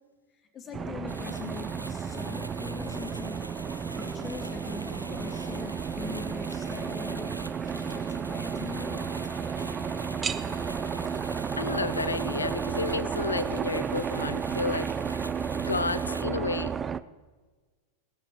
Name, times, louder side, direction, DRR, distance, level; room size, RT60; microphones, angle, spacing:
voice 1, 0.3-3.4 3.9-7.3 7.7-9.2, left 5 dB, 25° left, 2 dB, 2.5 m, -42 dB
sound 1, 0.7-17.0, right 7 dB, 20° right, 0.4 m, -32 dB
sound 2, 1.1-16.2, right 1 dB, 90° right, 0.3 m, -44 dB
voice 2, 11.6-14.9 15.5-16.7, left 4 dB, 75° left, 17 dB, 0.4 m, -31 dB
18.5 x 15.5 x 3.0 m, 1.4 s
figure-of-eight pair, 90°, 0 cm